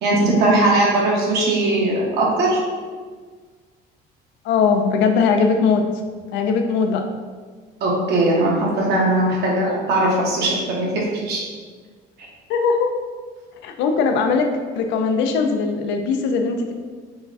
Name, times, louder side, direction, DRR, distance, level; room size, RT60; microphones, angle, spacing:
voice 1, 0.0-2.6 7.8-11.4 12.2-12.3, right 2 dB, 60° right, -3 dB, 1.4 m, -19 dB
voice 2, 4.4-5.8 6.3-7.0 12.5-12.9 13.6-14.5 14.7-16.7, left 5 dB, 75° left, 4 dB, 0.6 m, -19 dB
5.6 x 2.3 x 4.1 m, 1.5 s
cardioid pair, 145°, 19 cm